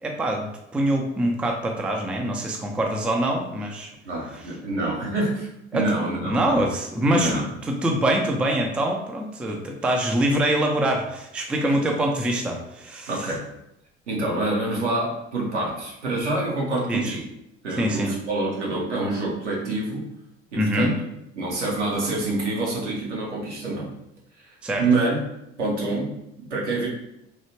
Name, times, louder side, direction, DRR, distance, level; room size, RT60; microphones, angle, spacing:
voice 1, 0.0-3.9 5.7-5.9 6.2-13.3 16.9-17.2 17.8-18.1 20.6-20.9 24.6-24.9, right 1 dB, 5° right, 2 dB, 0.3 m, -24 dB
voice 2, 4.0-6.6 7.1-7.5 13.1-13.5 14.1-17.2 17.6-20.1 20.5-21.0 21.4-23.9 24.4-25.2 25.6-26.1 26.4-26.9, right 2 dB, 80° right, -4 dB, 0.9 m, -26 dB
3.2 x 2.7 x 2.9 m, 0.85 s
figure-of-eight pair, 60°, 35 cm